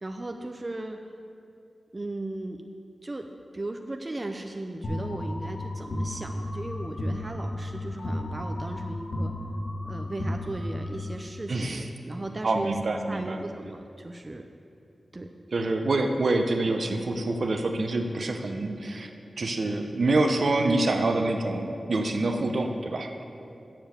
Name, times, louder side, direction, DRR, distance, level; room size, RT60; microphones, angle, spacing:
voice 1, 0.0-1.0 1.9-2.6 3.0-3.3 3.5-9.3 9.9-12.7 13.1-14.5 15.1-15.3, right 2 dB, 30° right, 4 dB, 0.5 m, -36 dB
sound 1, 4.8-11.2, left 1 dB, 65° left, 1.5 m, -33 dB
voice 2, 11.5-11.8 12.4-13.4 15.5-19.1 19.4-23.2, right 2 dB, 60° right, 5 dB, 0.7 m, -26 dB
7.5 x 6.9 x 8.1 m, 2.6 s
wide cardioid pair, 95°, 0 cm